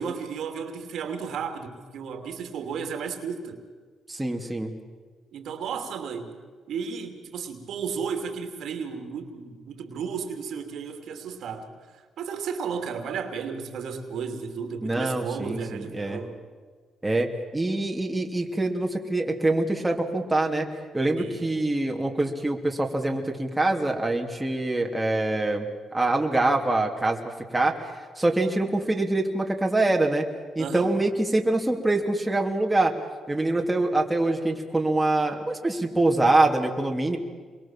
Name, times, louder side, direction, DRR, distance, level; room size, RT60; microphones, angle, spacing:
voice 1, 0.0-3.6 5.3-6.3 6.7-16.4 21.2-21.6 30.6-31.0, right 6 dB, 70° right, 6 dB, 2.8 m, -33 dB
voice 2, 4.1-4.7 14.8-16.2 17.0-17.3 17.5-20.7 20.9-25.6 25.9-27.7 28.2-30.2 30.5-32.9 33.3-37.2, right 2 dB, 10° right, 1 dB, 2.9 m, -24 dB
27.5 x 22.5 x 7.5 m, 1.5 s
cardioid pair, 90°, 0 cm